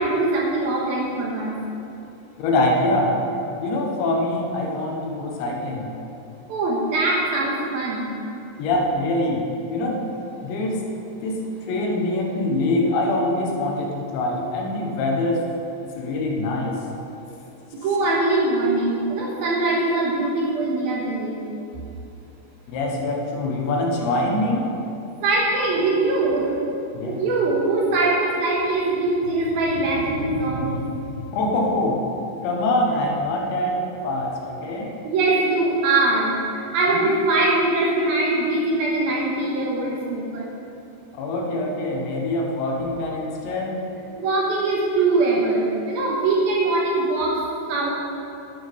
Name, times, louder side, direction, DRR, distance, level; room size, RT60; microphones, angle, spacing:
voice 1, 0.0-1.6 6.5-8.1 17.7-21.4 25.2-26.5 27.1-31.0 35.0-40.5 44.2-47.4 47.7-47.9, right 2 dB, 65° right, -3 dB, 2.7 m, -22 dB
voice 2, 2.4-3.2 3.6-5.9 8.6-10.0 10.4-10.9 11.2-15.5 15.9-16.8 22.7-24.7 26.9-27.2 31.3-32.0 32.4-34.9 36.9-37.1 41.1-43.8, left 1 dB, 75° left, 0 dB, 3.4 m, -24 dB
11.5 x 8.7 x 5.4 m, 2.9 s
omnidirectional pair, 5.3 m